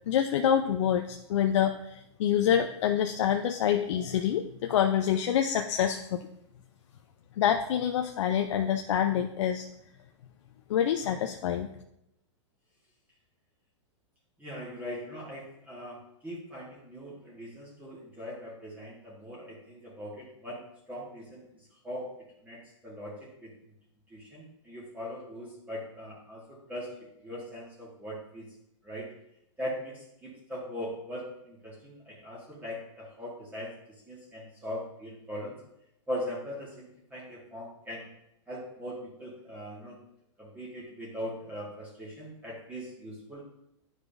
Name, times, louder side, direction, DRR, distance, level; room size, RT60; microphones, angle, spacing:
voice 1, 0.1-6.3 7.4-9.7 10.7-11.7, left 9 dB, 70° left, 5 dB, 0.5 m, -26 dB
voice 2, 14.4-20.6 20.9-21.4 21.8-22.1 22.4-23.5 24.1-28.4 28.8-29.1 29.6-33.7 34.1-35.6 36.1-38.1 38.5-40.0 40.4-43.4, equal, 10° right, -6 dB, 1.6 m, -40 dB
10.5 x 4.8 x 2.6 m, 0.81 s
hypercardioid pair, 130°, 16 cm